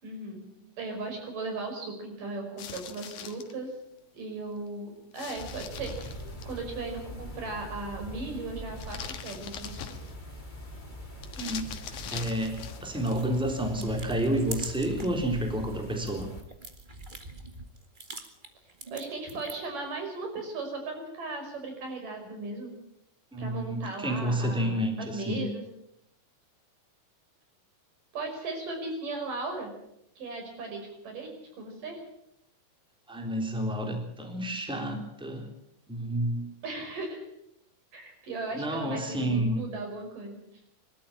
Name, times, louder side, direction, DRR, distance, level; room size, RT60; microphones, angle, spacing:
voice 1, 0.0-0.5 0.8-3.7 4.1-10.0 18.9-22.7 23.4-25.6 28.1-29.7 30.2-32.0 36.6-37.3 37.9-40.4, right 3 dB, 85° right, 3 dB, 7.0 m, -37 dB
sound 1, 2.6-3.5 5.1-6.6 8.8-10.3 11.2-12.9, left 8 dB, 70° left, 2.9 m, -42 dB
sound 2, 5.4-16.4, equal, 15° left, 3.1 m, -43 dB
voice 2, 11.4-16.3 23.3-25.4 33.1-35.4 35.9-36.5 38.5-39.6, right 1 dB, ahead, 3 dB, 3.4 m, -30 dB
sound 3, 12.1-15.2 15.6-19.8, right 2 dB, 20° right, 1.5 m, -45 dB
24.0 x 13.0 x 8.7 m, 0.79 s
omnidirectional pair, 3.7 m